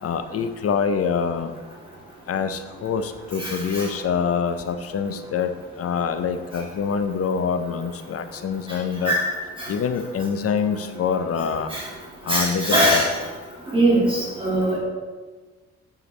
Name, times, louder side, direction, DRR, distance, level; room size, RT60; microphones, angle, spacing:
voice 1, 0.0-1.5 2.3-9.1 9.7-11.7 12.2-13.0, left 6 dB, 50° left, 9 dB, 0.7 m, -25 dB
voice 2, 3.4-3.9 8.7-8.8 9.0-9.3 9.6-9.7 11.7-11.9 12.3-13.2 13.7-14.8, right 1 dB, 15° right, -6 dB, 2.1 m, -21 dB
9.9 x 4.7 x 3.3 m, 1.3 s
cardioid pair, 90°, 30 cm